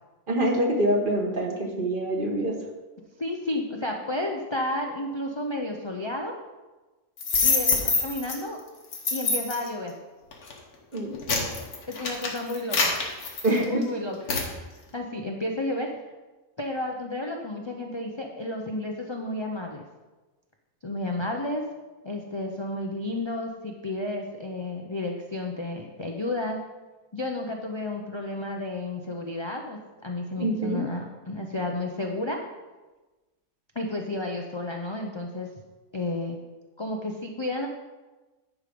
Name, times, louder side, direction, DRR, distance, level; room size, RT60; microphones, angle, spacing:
voice 1, 0.3-2.5 10.9-11.2 13.4-13.8 30.4-30.8, right 1 dB, 35° right, 0 dB, 1.4 m, -25 dB
voice 2, 3.2-6.4 7.4-8.6 9.1-9.9 11.6-12.9 13.7-14.2 14.9-16.0 16.6-19.9 20.8-21.6 22.0-26.6 27.1-32.4 33.7-35.5 35.9-36.4 36.8-37.7, left 2 dB, 35° left, 1 dB, 0.4 m, -32 dB
sound 1, 7.2-8.4 8.9-9.7 10.3-10.5 11.0-13.8 14.3-14.5, left 4 dB, 75° left, 1.8 m, -25 dB
10.5 x 5.0 x 5.2 m, 1.2 s
omnidirectional pair, 1.5 m